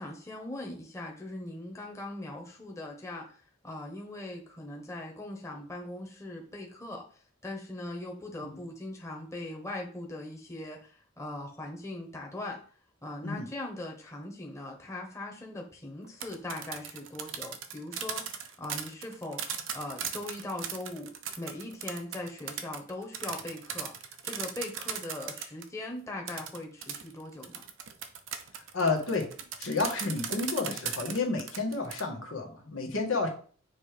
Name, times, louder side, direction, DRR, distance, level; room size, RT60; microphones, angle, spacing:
voice 1, 0.0-3.3 3.6-7.0 7.4-10.9 11.2-12.6 13.0-23.9 24.2-27.6, left 2 dB, 15° left, 0 dB, 1.2 m, -40 dB
sound 1, 16.0-25.7 26.3-32.0, right 8 dB, 80° right, 0.8 m, -38 dB
voice 2, 28.5-29.3 29.6-33.3, left 3 dB, 85° left, 0 dB, 1.8 m, -31 dB
7.3 x 3.3 x 5.1 m, 0.43 s
head